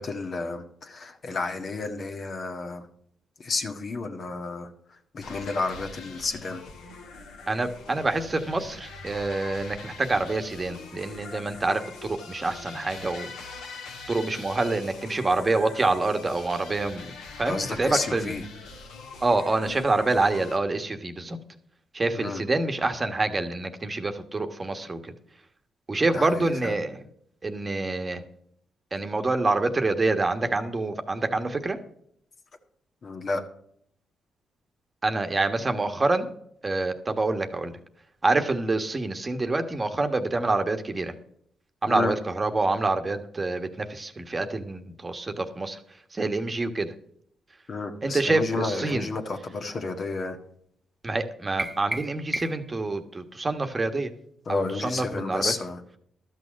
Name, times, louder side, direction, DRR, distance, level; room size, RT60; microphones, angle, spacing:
voice 1, 0.0-2.9 3.4-6.6 17.4-18.4 22.1-22.4 26.1-26.7 33.0-33.4 41.9-42.1 47.7-50.4 54.4-55.8, left 3 dB, 50° left, 5 dB, 1.6 m, -31 dB
sound 1, 5.2-20.6, left 4 dB, 90° left, 2.0 m, -43 dB
voice 2, 7.5-13.3 14.1-17.1 17.4-18.3 19.2-21.4 21.9-25.1 25.9-27.0 27.4-28.2 28.9-31.8 35.0-36.3 36.6-37.8 38.2-41.1 41.8-45.8 46.1-46.9 48.0-49.1 51.0-54.1 54.5-55.5, right 2 dB, 30° right, 7 dB, 1.3 m, -26 dB
sound 2, 51.6-52.8, right 1 dB, 15° right, 0.4 m, -33 dB
12.5 x 6.4 x 6.3 m, 0.68 s
cardioid pair, 75°, 0 cm